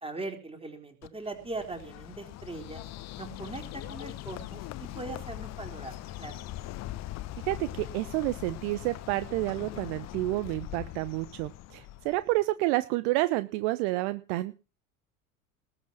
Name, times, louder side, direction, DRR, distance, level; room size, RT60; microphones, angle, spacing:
voice 1, 0.0-2.8 3.2-6.5, right 3 dB, 15° right, 5 dB, 3.9 m, -40 dB
Bird, 1.0-12.4, left 15 dB, 40° left, 1.0 m, -41 dB
voice 2, 7.4-14.5, right 19 dB, 50° right, 15 dB, 0.8 m, -29 dB
19.5 x 7.9 x 6.0 m, 0.33 s
figure-of-eight pair, 70°, 43 cm